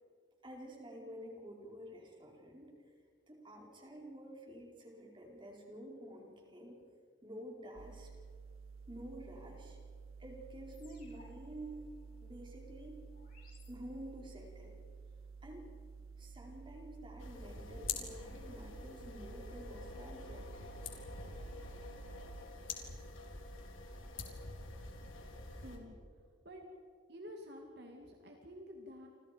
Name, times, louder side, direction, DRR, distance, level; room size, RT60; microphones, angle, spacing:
voice 1, 0.4-2.9 3.3-6.8 7.2-8.1 8.9-9.8 10.2-11.8 12.2-13.0 13.7-14.8 15.4-15.7 16.2-20.5, right 1 dB, 25° right, -1 dB, 4.7 m, -50 dB
sound 1, 7.8-22.5, right 5 dB, 90° right, 0.6 m, -52 dB
sound 2, 10.7-14.4, left 4 dB, 45° left, 7.1 m, -66 dB
sound 3, 17.2-25.8, left 4 dB, 85° left, 3.7 m, -46 dB
voice 2, 25.6-26.0 26.4-26.7 27.1-29.1, equal, 55° right, 2 dB, 2.4 m, -50 dB
30.0 x 26.0 x 5.2 m, 2.1 s
head